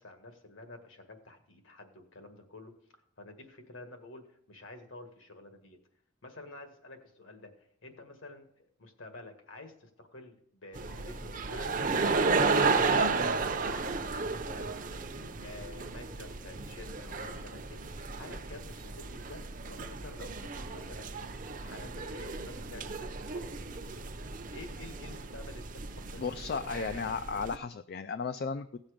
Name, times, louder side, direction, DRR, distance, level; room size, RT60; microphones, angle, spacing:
voice 1, 0.0-2.7 3.2-5.8 6.2-19.4 19.7-23.7 24.5-27.1, left 2 dB, 75° left, 5 dB, 1.9 m, -50 dB
sound 1, 10.8-27.6, right 4 dB, 40° right, 0.7 m, -33 dB
voice 2, 26.2-28.8, left 5 dB, 50° left, 12 dB, 0.4 m, -35 dB
16.5 x 7.3 x 5.1 m, 0.70 s
head